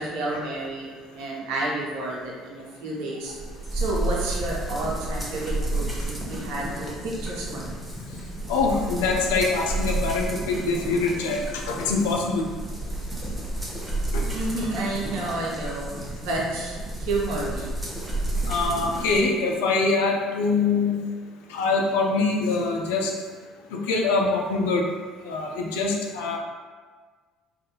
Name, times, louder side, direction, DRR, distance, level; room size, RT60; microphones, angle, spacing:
voice 1, 0.0-3.4 3.7-7.8 14.3-17.7, right 2 dB, 70° right, -4 dB, 0.6 m, -30 dB
sound 1, 3.3-19.2, right 2 dB, 15° right, 0.9 m, -31 dB
voice 2, 8.5-12.5 14.1-14.2 15.3-15.4 18.5-21.0 21.5-23.1 23.7-24.8 25.2-26.4, left 3 dB, 75° left, 0 dB, 0.4 m, -24 dB
2.6 x 2.5 x 3.6 m, 1.5 s
hypercardioid pair, 55°, 0 cm